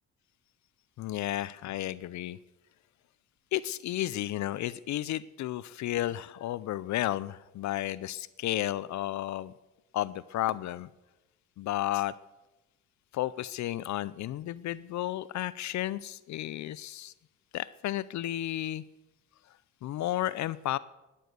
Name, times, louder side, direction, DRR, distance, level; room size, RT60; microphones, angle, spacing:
voice 1, 1.0-2.4 3.5-9.5 9.9-10.9 11.6-12.1 13.1-17.1 17.5-18.8 19.8-20.8, left 14 dB, 70° left, 0.5 m, -32 dB
16.0 x 11.0 x 6.7 m
cardioid pair, 90°, 30 cm